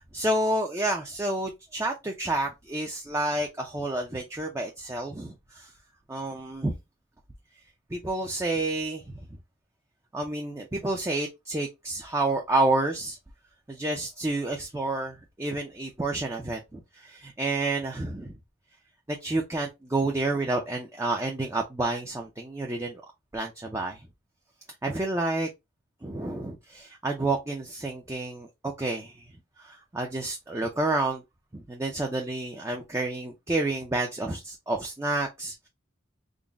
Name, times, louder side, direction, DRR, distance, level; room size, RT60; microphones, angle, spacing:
voice 1, 0.0-5.7 6.1-6.7 7.9-9.1 10.1-13.2 13.7-18.3 19.1-23.0 23.3-24.1 24.8-25.5 26.0-29.2 29.6-31.2 31.5-35.7, right 2 dB, 15° right, 0.5 m, -29 dB
3.8 x 2.1 x 3.4 m
head